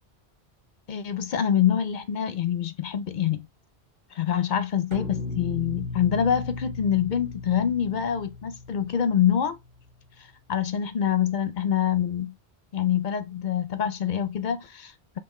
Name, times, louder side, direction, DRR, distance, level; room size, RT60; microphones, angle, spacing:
voice 1, 0.9-3.5 4.1-9.6 10.5-12.3 12.7-15.2, left 9 dB, 55° left, 0.6 m, -25 dB
sound 1, 4.9-10.1, left 3 dB, 30° right, 0.9 m, -37 dB
5.3 x 2.0 x 3.1 m
omnidirectional pair, 1.1 m